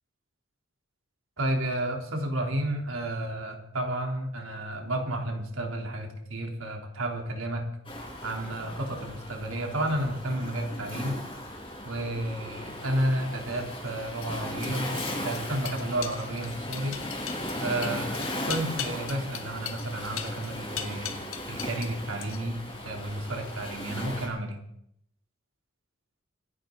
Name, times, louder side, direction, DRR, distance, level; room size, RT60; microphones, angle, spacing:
voice 1, 1.4-7.7 8.2-11.2 11.8-17.0 17.6-21.1 21.5-24.6, right 1 dB, 90° right, 2 dB, 3.4 m, -31 dB
Waves surf, 7.8-24.3, left 1 dB, 25° left, 5.5 m, -37 dB
sound 1, 13.4-21.9 22.2-22.7, left 9 dB, 90° left, 1.5 m, -39 dB
25.5 x 11.0 x 4.0 m, 0.75 s
head